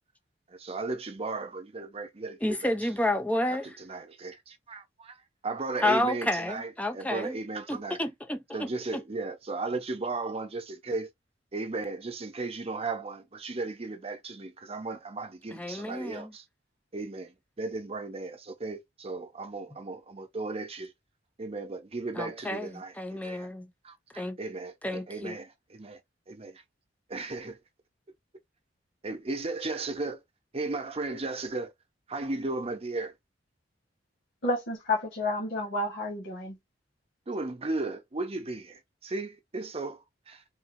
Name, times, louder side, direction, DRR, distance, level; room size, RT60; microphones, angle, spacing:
voice 1, 0.5-2.7 3.5-5.2 5.4-8.0 8.5-11.1 11.5-16.4 16.9-20.9 21.4-23.5 23.8-26.0 26.3-26.6 27.1-27.6 29.0-30.2 30.5-31.7 32.1-33.1 37.3-40.4, right 3 dB, 35° right, 0.7 m, -35 dB
voice 2, 2.4-3.7 5.8-7.4 7.7-9.0 15.5-16.3 22.1-23.7 24.2-24.4 24.8-25.4, left 1 dB, 10° left, 0.6 m, -30 dB
voice 3, 34.4-36.6, left 2 dB, 70° left, 1.4 m, -30 dB
3.8 x 2.3 x 2.7 m
head